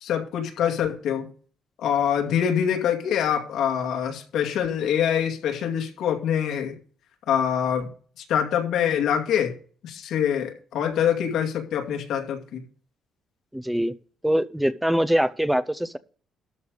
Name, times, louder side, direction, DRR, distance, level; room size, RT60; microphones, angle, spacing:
voice 1, 0.0-1.3 1.8-6.8 7.3-7.9 8.3-9.5 9.8-12.6, left 9 dB, 65° left, 3 dB, 2.4 m, -25 dB
voice 2, 13.5-14.0 14.2-16.0, equal, 5° right, 13 dB, 0.4 m, -23 dB
13.0 x 5.3 x 6.5 m, 0.43 s
cardioid pair, 180°, 0 cm